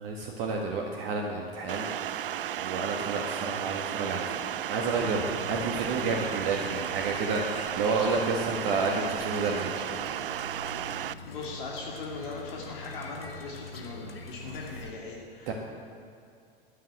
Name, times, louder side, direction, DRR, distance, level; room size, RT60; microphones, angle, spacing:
voice 1, 0.0-1.9 2.5-9.7 15.5-15.6, right 3 dB, 45° right, 0 dB, 1.7 m, -30 dB
sound 1, 1.7-11.1, right 11 dB, 70° right, 0.5 m, -34 dB
sound 2, 4.9-14.9, left 2 dB, 80° left, 1.8 m, -44 dB
voice 2, 11.2-15.5, left 3 dB, 60° left, -2 dB, 2.6 m, -39 dB
13.0 x 10.5 x 8.9 m, 2.4 s
figure-of-eight pair, 90°, 29 cm